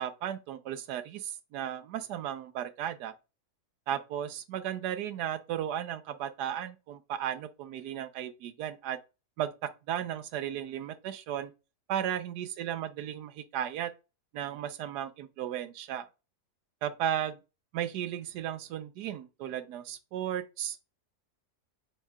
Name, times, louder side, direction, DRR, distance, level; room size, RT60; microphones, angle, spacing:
voice 1, 0.0-3.1 3.9-9.0 9.4-11.5 11.9-13.9 14.3-16.1 16.8-17.4 17.7-20.8, right 10 dB, 80° right, 1.2 m, -35 dB
4.8 x 4.5 x 2.2 m
omnidirectional pair, 1.7 m